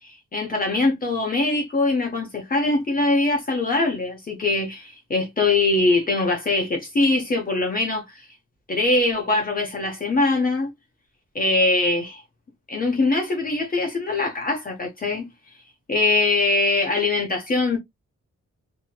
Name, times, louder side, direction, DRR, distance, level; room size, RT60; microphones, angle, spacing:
voice 1, 0.0-8.3 8.7-10.7 11.3-12.2 12.7-15.3 15.9-17.8, left 2 dB, 30° left, 0.7 m, -22 dB
2.7 x 2.7 x 2.3 m
wide cardioid pair, 160°, 29 cm